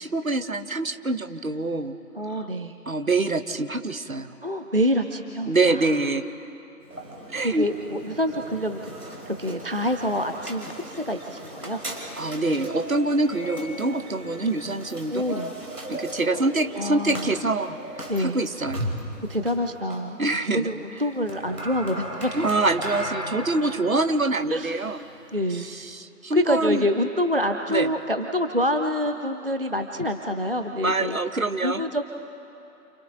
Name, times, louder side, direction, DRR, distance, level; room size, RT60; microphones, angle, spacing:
voice 1, 0.0-1.9 2.3-2.5 2.9-4.3 5.5-6.2 7.3-7.7 12.2-15.2 15.9-18.9 20.2-20.7 22.3-25.0 25.5-26.9 27.7-27.9 30.7-31.8, right 2 dB, 60° right, 10 dB, 1.1 m, -25 dB
voice 2, 2.1-2.8 4.4-5.9 7.4-8.9 9.3-11.8 15.0-15.5 16.3-16.5 16.7-17.3 18.1-18.5 19.3-22.3 24.5-24.9 25.3-25.7 26.3-31.2 31.6-32.0, equal, 35° right, 5 dB, 0.6 m, -27 dB
sound 1, 6.8-25.9, right 1 dB, 80° right, 4.6 m, -37 dB
29.5 x 28.0 x 4.0 m, 2.9 s
figure-of-eight pair, 160°, 47 cm